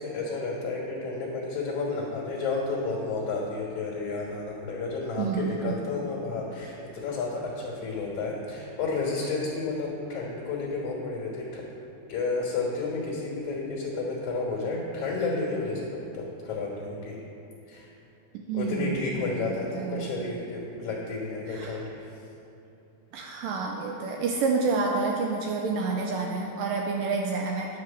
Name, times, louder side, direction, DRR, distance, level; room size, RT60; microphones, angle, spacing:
voice 1, 0.0-11.6 12.1-17.2 17.7-17.9 18.5-22.1, left 3 dB, 60° left, -3 dB, 2.6 m, -31 dB
voice 2, 5.2-5.8 18.5-19.0 19.8-20.1 21.6-21.7 23.1-27.7, right 4 dB, 90° right, 0 dB, 1.9 m, -28 dB
11.0 x 4.8 x 7.2 m, 2.9 s
omnidirectional pair, 4.6 m